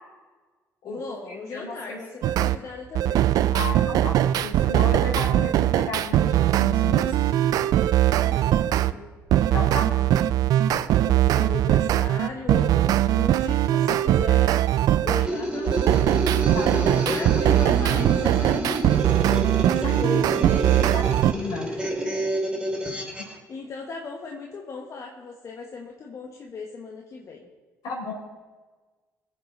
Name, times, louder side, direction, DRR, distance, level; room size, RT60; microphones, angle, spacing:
voice 1, 0.8-3.4 8.2-9.2 9.7-10.2 10.8-14.6 15.0-16.1 16.7-20.9 21.6-22.2 22.8-23.1 23.5-27.5, left 4 dB, 50° left, 1 dB, 1.4 m, -37 dB
voice 2, 1.5-2.0 3.5-7.2 9.5-10.1 16.5-17.2 19.8-19.9 20.9-21.7 23.2-23.3 27.8-28.1, left 3 dB, 75° left, -2 dB, 4.6 m, -33 dB
sound 1, 2.2-2.6 3.0-8.9 9.3-15.3 15.7-21.3, right 12 dB, 70° right, 0.4 m, -21 dB
sound 2, 15.1-23.3, right 1 dB, 15° right, 2.7 m, -29 dB
19.5 x 7.5 x 4.0 m, 1.3 s
supercardioid pair, 70°, 7 cm